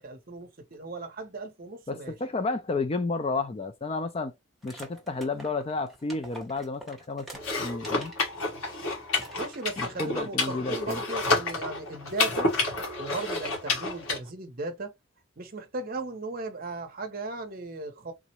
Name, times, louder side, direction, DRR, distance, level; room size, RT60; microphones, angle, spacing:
voice 1, 0.0-2.2 9.4-12.5 13.0-14.9 15.4-18.1, right 3 dB, 40° right, 0.7 m, -37 dB
voice 2, 1.9-4.3 4.6-7.3 7.6-8.1 9.8-11.0, left 3 dB, 25° left, 0.3 m, -31 dB
sound 1, 4.6-8.2 8.7-8.8 9.1-9.9, right 1 dB, ahead, 0.7 m, -46 dB
sound 2, 7.3-14.2, left 3 dB, 80° left, 1.3 m, -29 dB
3.7 x 2.0 x 2.8 m
head